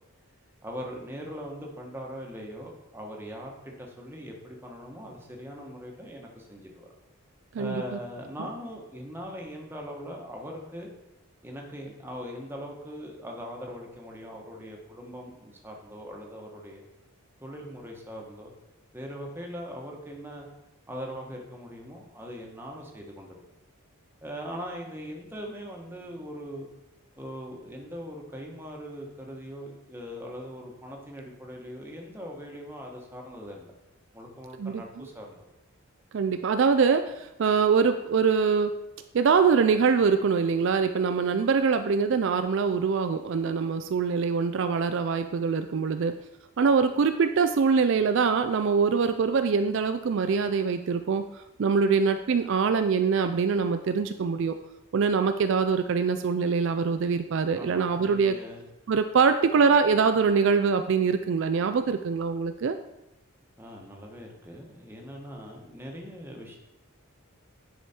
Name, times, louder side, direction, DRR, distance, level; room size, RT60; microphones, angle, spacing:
voice 1, 0.6-6.9 7.6-10.9 11.4-16.8 17.4-18.5 18.9-20.5 20.9-23.4 24.2-26.7 27.2-33.7 34.1-35.4 57.5-58.6 63.6-66.6, equal, 10° right, 0 dB, 1.2 m, -41 dB
voice 2, 7.5-8.0 34.6-35.0 36.1-38.7 39.1-46.1 46.6-54.6 54.9-58.4 58.9-62.8, right 5 dB, 55° right, 8 dB, 0.3 m, -24 dB
10.0 x 4.9 x 4.3 m, 0.95 s
head